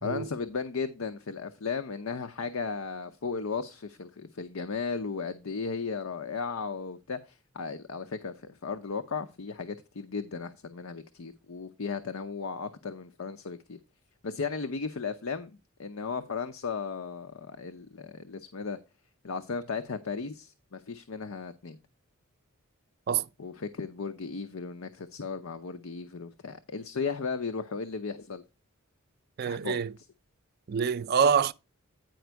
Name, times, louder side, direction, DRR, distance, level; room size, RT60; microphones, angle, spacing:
voice 1, 0.0-13.8 14.2-18.8 19.2-21.8 23.4-28.4 29.4-29.8, left 5 dB, 80° left, 0.7 m, -35 dB
voice 2, 29.4-29.9 30.7-31.5, right 7 dB, 50° right, 0.4 m, -26 dB
9.3 x 5.1 x 4.6 m
head